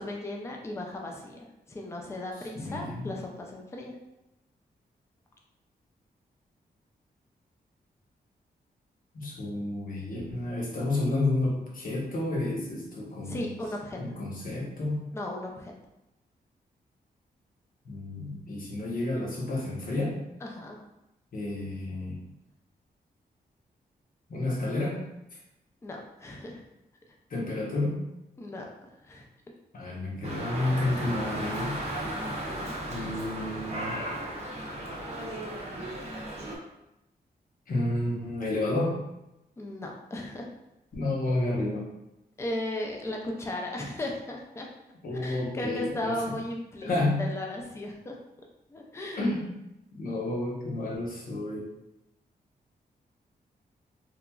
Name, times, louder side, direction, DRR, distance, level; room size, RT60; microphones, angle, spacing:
voice 1, 0.0-3.9 13.3-14.0 15.1-15.7 20.4-20.8 25.8-26.6 28.4-28.6 29.0-29.3 32.5-32.8 39.6-40.5 42.4-44.7 45.2-46.9 47.2-48.2 48.7-49.3, left 1 dB, 15° left, 0 dB, 0.4 m, -36 dB
voice 2, 2.5-3.1 9.1-13.4 14.0-15.0 17.8-20.1 21.3-22.2 24.3-25.0 27.3-28.0 29.7-31.8 32.9-34.0 37.7-39.0 40.9-41.8 45.0-46.2 46.8-47.3 49.2-49.4 49.9-51.7, left 2 dB, 55° left, -3 dB, 0.8 m, -30 dB
Dog, 30.2-36.6, right 1 dB, 40° right, 0.6 m, -35 dB
2.9 x 2.4 x 2.2 m, 0.90 s
wide cardioid pair, 105°, 17 cm